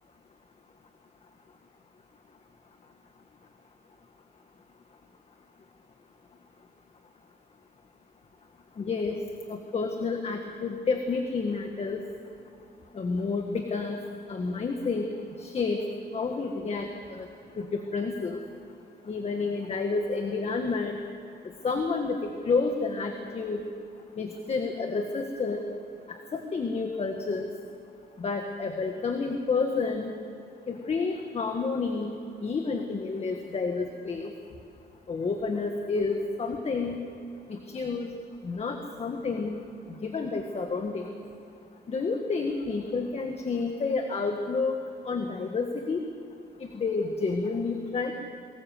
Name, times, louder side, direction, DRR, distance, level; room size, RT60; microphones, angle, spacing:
voice 1, 8.8-9.2 9.5-12.0 12.9-14.0 14.3-15.1 15.4-15.8 16.1-17.3 17.6-18.4 19.1-21.0 21.6-23.6 24.2-25.6 26.1-27.5 28.2-30.1 30.7-32.1 32.4-34.3 35.1-37.0 37.5-38.1 38.4-39.6 40.0-41.1 41.9-44.7 45.0-46.0 46.7-48.1, left 4 dB, 35° left, 4 dB, 1.7 m, -30 dB
24.0 x 20.0 x 7.7 m, 2.7 s
cardioid pair, 155°, 18 cm